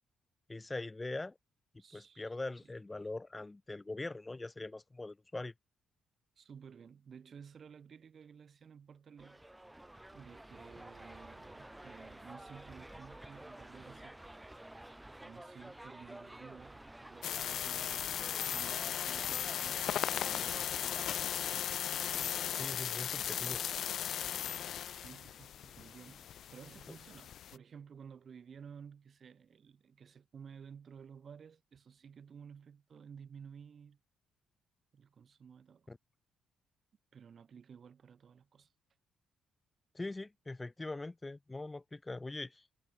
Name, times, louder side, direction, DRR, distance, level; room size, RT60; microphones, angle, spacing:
voice 1, 0.5-1.4 1.9-5.5 22.5-23.6 35.9-36.0 39.9-42.6, left 2 dB, 20° left, 2.1 m, -42 dB
voice 2, 1.8-2.4 2.6-2.7 6.4-9.4 10.1-14.6 15.2-21.5 24.9-34.0 34.9-35.9 37.1-38.7, right 7 dB, 50° right, 3.9 m, -54 dB
sound 1, 9.2-21.1, right 1 dB, 10° right, 3.1 m, -51 dB
sound 2, 17.2-27.6, left 10 dB, 65° left, 0.7 m, -37 dB
cardioid pair, 90°, 0 cm